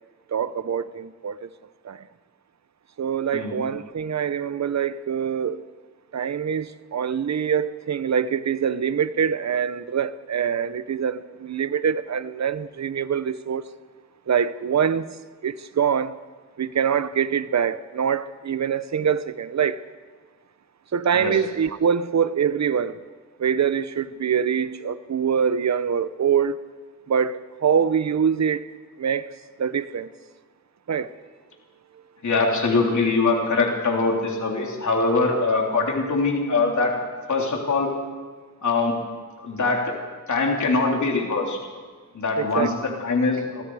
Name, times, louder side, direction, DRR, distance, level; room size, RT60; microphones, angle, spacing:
voice 1, 0.3-1.5 1.8-2.0 3.0-5.6 6.1-13.6 14.3-15.1 15.4-16.2 16.6-19.8 20.9-23.0 23.4-26.6 27.1-28.7 29.0-29.3 29.6-30.1 30.9-31.1 42.4-42.7, right 7 dB, 55° right, 0.8 m, -24 dB
voice 2, 32.2-37.0 37.3-37.9 38.6-39.0 39.4-39.9 40.3-41.6 42.1-43.6, left 3 dB, 60° left, 3.5 m, -23 dB
26.5 x 23.5 x 4.8 m
wide cardioid pair, 170°, 33 cm